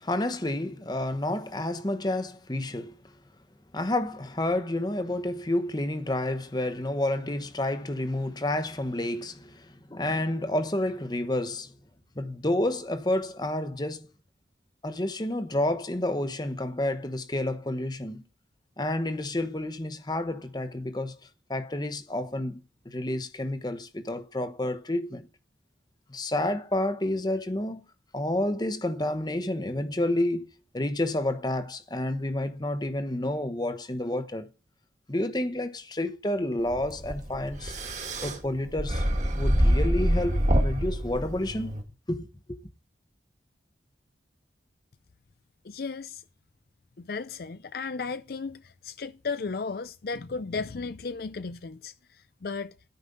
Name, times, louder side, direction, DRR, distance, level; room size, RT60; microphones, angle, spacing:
voice 1, 0.0-2.9 3.7-11.7 12.2-14.1 14.8-18.2 18.8-21.2 21.5-25.3 26.1-27.8 28.1-30.5 30.7-34.5 35.1-37.8 38.2-39.1 39.4-41.7 42.1-42.6, left 1 dB, 25° left, 1.0 m, -30 dB
sound 1, 36.7-41.8, equal, 40° right, 2.0 m, -26 dB
voice 2, 45.6-46.2 47.0-52.7, left 4 dB, 55° left, 0.5 m, -35 dB
13.5 x 5.4 x 5.3 m
head